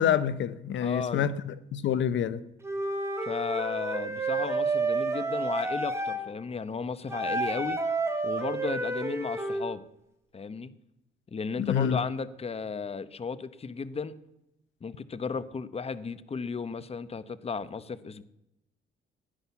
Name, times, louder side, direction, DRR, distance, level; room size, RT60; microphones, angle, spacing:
voice 1, 0.0-2.4 11.6-12.0, left 8 dB, 70° left, 0.8 m, -27 dB
voice 2, 0.8-1.3 3.2-7.8 8.2-9.8 10.3-10.7 11.3-14.2 14.8-18.2, left 5 dB, 30° left, 1.0 m, -34 dB
Wind instrument woodwind instrument, 2.6-6.2 7.1-9.7, right 2 dB, 15° right, 2.9 m, -30 dB
16.0 x 10.0 x 7.1 m
cardioid pair, 90°, 20 cm